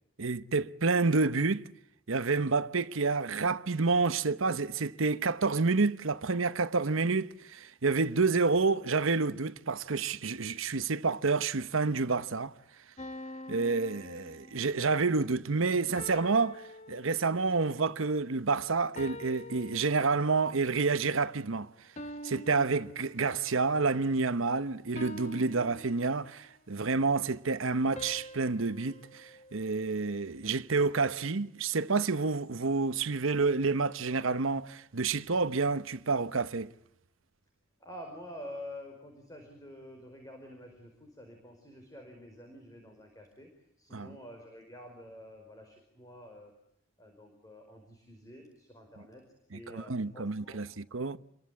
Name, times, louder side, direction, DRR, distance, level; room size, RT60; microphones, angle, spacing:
voice 1, 0.2-1.7 2.1-12.5 13.5-16.6 16.9-21.7 22.2-36.7 43.9-44.1 49.7-51.2, right 4 dB, 75° right, 1.0 m, -29 dB
sound 1, 13.0-14.9 16.0-17.6 19.0-20.5 22.0-23.6 25.0-26.6 28.0-30.3, left 1 dB, 35° left, 1.1 m, -46 dB
voice 2, 37.8-43.5 43.8-46.5 47.0-49.2 49.5-50.6, left 1 dB, 15° left, 5.0 m, -48 dB
28.5 x 23.0 x 8.4 m
head